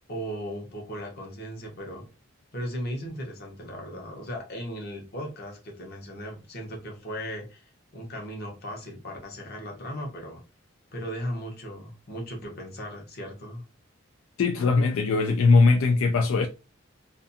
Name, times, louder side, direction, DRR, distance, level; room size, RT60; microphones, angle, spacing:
voice 1, 0.1-2.1 2.5-10.4 10.9-13.6, equal, 50° left, 0.9 m, -37 dB
voice 2, 14.4-16.5, left 3 dB, 80° left, 0.3 m, -20 dB
2.5 x 2.4 x 2.6 m
head